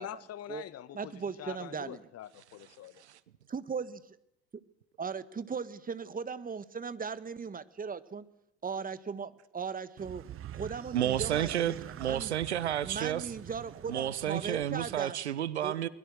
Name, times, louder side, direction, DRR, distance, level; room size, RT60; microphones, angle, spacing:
voice 1, 0.0-3.0, left 12 dB, 50° left, 1.3 m, -45 dB
voice 2, 0.9-2.0 3.5-4.2 5.0-8.3 8.6-10.2 10.5-11.5 12.0-12.3 12.8-15.2 15.6-15.7, right 5 dB, 25° right, 1.5 m, -38 dB
sound 1, 10.0-15.0, right 12 dB, 40° right, 0.9 m, -45 dB
voice 3, 10.9-13.3 13.9-15.9, right 11 dB, 90° right, 1.0 m, -31 dB
23.5 x 21.5 x 6.4 m
hypercardioid pair, 65°, 32 cm